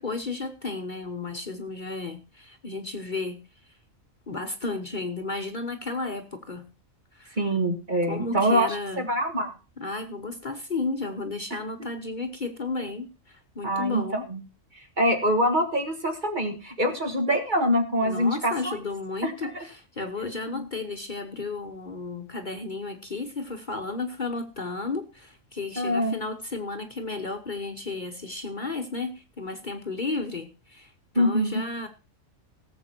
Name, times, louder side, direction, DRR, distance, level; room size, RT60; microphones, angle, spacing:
voice 1, 0.0-3.4 4.3-6.6 7.1-7.4 8.0-9.0 9.8-14.2 18.0-31.9, left 3 dB, 40° left, 6 dB, 1.2 m, -33 dB
voice 2, 7.4-8.7 9.0-9.5 13.6-14.0 14.3-14.4 15.0-18.8 19.2-19.5 25.8-26.2 31.2-31.6, equal, 35° right, 6 dB, 1.8 m, -24 dB
17.5 x 7.5 x 4.4 m, 0.31 s
omnidirectional pair, 1.4 m